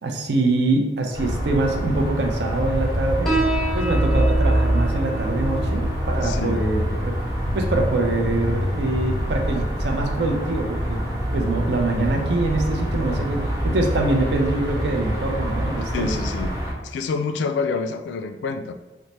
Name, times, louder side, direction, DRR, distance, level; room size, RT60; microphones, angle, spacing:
voice 1, 0.0-3.3 3.7-7.1 7.5-11.0 11.3-16.1, right 2 dB, 65° right, 3 dB, 0.5 m, -24 dB
sound 1, 1.1-16.7, equal, 20° right, 0.8 m, -25 dB
Piano, 3.3-10.3, right 3 dB, ahead, 0.5 m, -31 dB
voice 2, 6.2-6.6 15.9-16.5 16.8-18.7, left 4 dB, 75° left, 7 dB, 0.3 m, -27 dB
3.1 x 2.1 x 4.1 m, 1.2 s
head